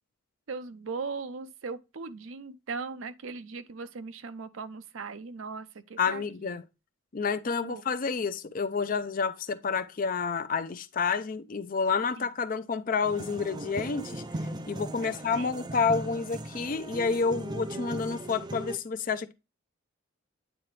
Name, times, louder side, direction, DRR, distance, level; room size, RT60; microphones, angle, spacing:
voice 1, 0.5-6.6 7.6-7.8 12.2-12.3 15.0-15.5, right 4 dB, 70° right, 0.6 m, -39 dB
voice 2, 6.0-6.6 7.1-14.2 14.7-19.3, left 5 dB, 40° left, 0.4 m, -29 dB
sound 1, 13.0-18.8, right 1 dB, 20° right, 0.4 m, -38 dB
9.0 x 3.8 x 3.1 m
head